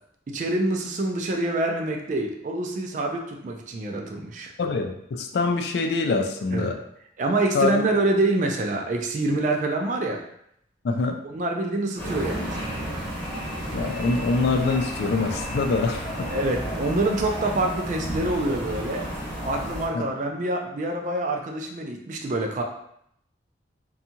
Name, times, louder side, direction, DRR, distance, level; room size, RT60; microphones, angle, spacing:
voice 1, 0.3-4.5 6.5-6.7 7.2-10.2 11.2-13.1 16.3-19.1 19.4-22.6, right 2 dB, 40° right, 2 dB, 0.3 m, -26 dB
voice 2, 4.6-6.8 7.5-7.8 10.8-11.2 13.7-16.3 19.9-20.0, left 3 dB, 60° left, 5 dB, 0.3 m, -24 dB
sound 1, 12.0-19.9, equal, 10° left, 0.8 m, -32 dB
2.7 x 2.3 x 2.7 m, 0.73 s
head